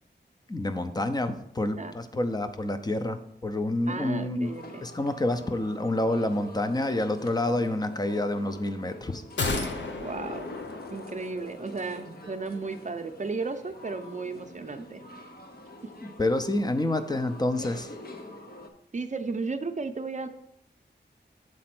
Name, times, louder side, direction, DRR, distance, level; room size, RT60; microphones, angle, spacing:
voice 1, 0.5-4.5 4.8-9.2 16.0-17.9, left 1 dB, 20° left, 9 dB, 0.6 m, -28 dB
voice 2, 3.9-4.8 10.0-10.5 10.9-15.0 15.8-15.9 18.9-20.3, right 4 dB, 40° right, 8 dB, 0.6 m, -34 dB
sound 1, 4.4-18.7, left 1 dB, 55° left, 0.9 m, -46 dB
sound 2, 9.4-11.7 12.0-12.1, left 3 dB, 80° left, 0.8 m, -33 dB
7.7 x 4.2 x 6.0 m, 0.74 s
wide cardioid pair, 105°, 18 cm